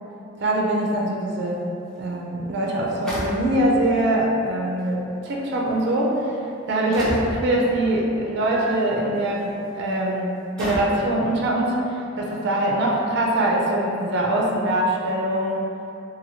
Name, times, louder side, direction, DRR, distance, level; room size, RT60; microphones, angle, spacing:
voice 1, 0.4-1.6 2.0-6.3 6.7-15.6, right 1 dB, 60° right, -2 dB, 0.4 m, -23 dB
sound 1, 2.0-2.1 3.1-3.9 4.8-4.9 5.7-5.9 6.9-7.4 8.7-8.9 9.5-9.6 10.6-11.1, equal, 5° left, 0.6 m, -30 dB
sound 2, 8.5-9.8, right 3 dB, 50° left, 0.6 m, -39 dB
2.8 x 2.6 x 2.7 m, 2.7 s
head